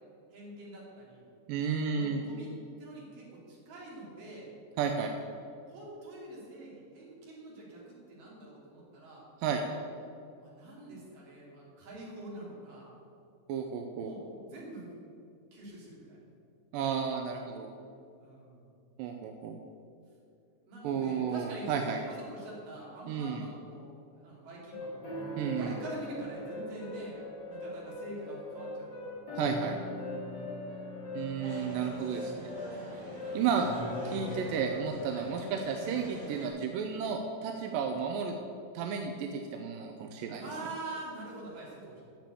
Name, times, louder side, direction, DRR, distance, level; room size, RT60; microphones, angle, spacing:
voice 1, 0.3-1.3 1.8-2.5 2.8-4.5 5.7-9.3 10.4-12.9 13.6-14.9 15.5-16.2 18.2-18.7 20.7-27.2 27.5-29.1 30.6-31.0 32.8-33.0 35.1-35.3 40.4-42.1, right 2 dB, 70° right, -4 dB, 4.4 m, -45 dB
voice 2, 1.5-2.2 4.8-5.1 9.4-9.6 13.5-14.1 16.7-17.7 19.0-19.6 20.8-22.0 23.1-23.4 25.4-25.7 29.4-29.8 31.1-32.4 33.3-33.7 34.0-38.3 38.7-40.4, right 6 dB, 85° right, 3 dB, 2.3 m, -32 dB
sound 1, 24.7-34.9, left 1 dB, 30° left, 3.3 m, -40 dB
sound 2, 31.4-36.5, right 1 dB, 35° right, 3.0 m, -45 dB
9.1 x 6.9 x 8.9 m, 2.5 s
omnidirectional pair, 4.0 m